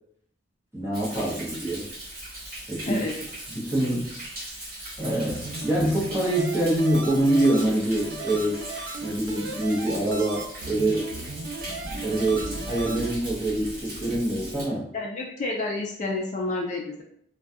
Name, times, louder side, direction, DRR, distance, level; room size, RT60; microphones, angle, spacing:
voice 1, 0.7-1.9 2.7-3.1 3.5-4.1 5.0-8.5 9.0-11.1 12.0-14.9, right 1 dB, 15° right, -7 dB, 0.7 m, -25 dB
Thunder, 0.9-14.6, right 1 dB, 50° right, 0.9 m, -39 dB
sound 1, 5.3-13.1, right 3 dB, 75° right, 0.4 m, -37 dB
voice 2, 14.9-17.0, left 2 dB, 40° left, 0 dB, 0.3 m, -29 dB
2.3 x 2.2 x 2.6 m, 0.71 s
head